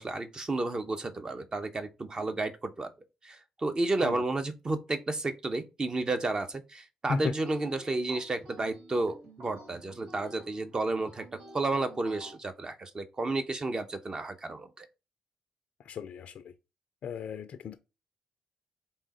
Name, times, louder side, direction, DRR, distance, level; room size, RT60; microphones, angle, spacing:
voice 1, 0.0-2.9 3.2-14.9, right 2 dB, 35° right, 0.9 m, -32 dB
sound 1, 7.1-12.4, right 1 dB, 70° right, 1.7 m, -51 dB
voice 2, 15.9-16.3 17.0-17.8, left 5 dB, 65° left, 0.4 m, -35 dB
3.6 x 2.8 x 4.2 m
hypercardioid pair, 50°, 2 cm